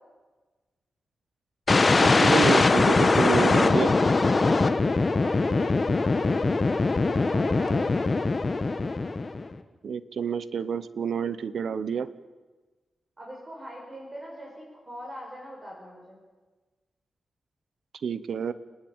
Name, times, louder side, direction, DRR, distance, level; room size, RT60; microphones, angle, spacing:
sound 1, 1.7-9.5, left 3 dB, 40° left, 1.4 m, -22 dB
voice 1, 2.0-3.9 9.8-12.1 18.0-18.5, right 6 dB, 70° right, 14 dB, 0.9 m, -28 dB
voice 2, 5.1-7.9 13.2-16.2, equal, 25° right, -2 dB, 6.1 m, -41 dB
29.5 x 10.5 x 8.8 m, 1.3 s
cardioid pair, 70°, 0 cm